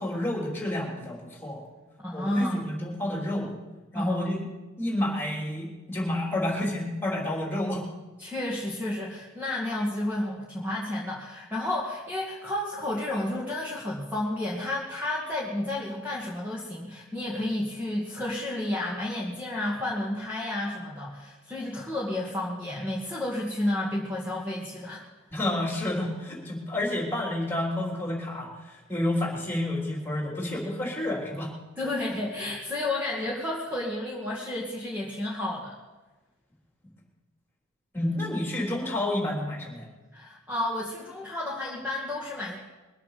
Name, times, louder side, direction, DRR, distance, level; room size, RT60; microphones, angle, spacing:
voice 1, 0.0-1.6 2.1-3.5 3.9-4.5 4.8-7.8 25.3-31.5 37.9-39.9, left 1 dB, 10° left, -2 dB, 3.6 m, -30 dB
voice 2, 2.0-2.7 3.9-4.3 8.2-25.0 31.8-35.7 40.1-42.6, left 1 dB, 10° right, -5 dB, 2.1 m, -31 dB
22.0 x 7.7 x 6.8 m, 1.2 s
head